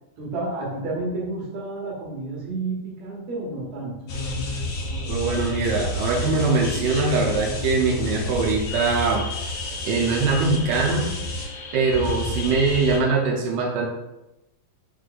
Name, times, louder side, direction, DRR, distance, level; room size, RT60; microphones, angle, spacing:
voice 1, 0.2-4.0, right 2 dB, 60° right, -4 dB, 2.4 m, -30 dB
sound 1, 4.1-13.0, left 2 dB, 65° left, 1.6 m, -29 dB
voice 2, 5.1-9.2 9.8-11.1 11.7-13.9, right 4 dB, 90° right, -2 dB, 2.3 m, -22 dB
5.5 x 2.5 x 3.9 m, 0.94 s
omnidirectional pair, 3.7 m